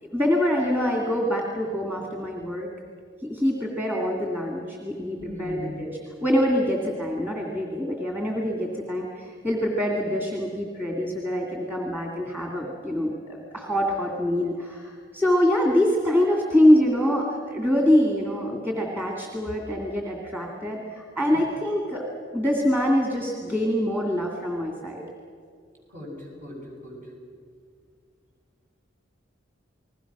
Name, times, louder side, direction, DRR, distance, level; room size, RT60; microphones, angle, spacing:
voice 1, 0.0-2.7 3.2-22.1 22.3-25.0, equal, 10° right, 0 dB, 2.4 m, -25 dB
voice 2, 5.2-5.8 21.3-21.5 25.9-26.1 26.4-27.0, left 1 dB, 45° right, -2 dB, 7.6 m, -37 dB
29.5 x 20.5 x 6.1 m, 2.1 s
head